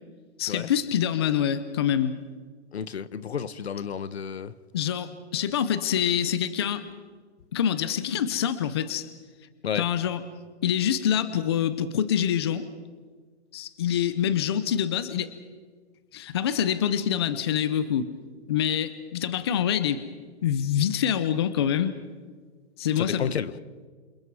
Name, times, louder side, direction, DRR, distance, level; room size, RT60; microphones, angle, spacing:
voice 1, 0.4-2.2 4.7-6.9 7.5-9.1 9.7-10.2 10.6-12.7 13.5-15.3 16.1-18.1 18.5-20.0 20.4-21.9 22.8-23.2, left 9 dB, 25° left, 0.7 m, -25 dB
voice 2, 2.7-4.5 9.6-9.9 23.0-23.5, left 7 dB, 65° left, 1.2 m, -31 dB
28.0 x 27.5 x 4.8 m
hypercardioid pair, 170°, 34 cm